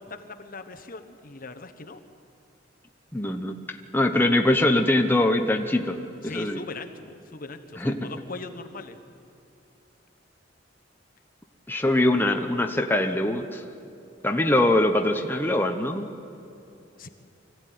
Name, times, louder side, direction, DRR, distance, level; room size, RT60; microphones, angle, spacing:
voice 1, 0.0-2.0 6.2-9.0 17.0-17.1, left 3 dB, 50° left, 8 dB, 1.3 m, -40 dB
voice 2, 3.1-6.0 6.2-6.6 7.8-8.1 11.7-13.6 14.2-16.1, left 1 dB, 10° left, 3 dB, 1.0 m, -23 dB
25.0 x 15.5 x 9.4 m, 2.8 s
head